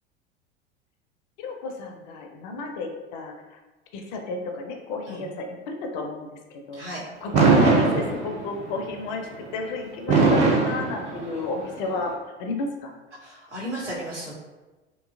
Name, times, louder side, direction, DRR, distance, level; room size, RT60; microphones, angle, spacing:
voice 1, 1.4-3.6 3.9-6.8 7.2-12.9, left 3 dB, 45° left, 3 dB, 0.4 m, -32 dB
Fireworks, 7.3-8.6 10.1-11.6, right 3 dB, 20° right, 0.4 m, -20 dB
voice 2, 13.2-14.3, right 1 dB, 80° right, -7 dB, 1.0 m, -34 dB
2.8 x 2.3 x 2.3 m, 1.2 s
figure-of-eight pair, 75°, 35 cm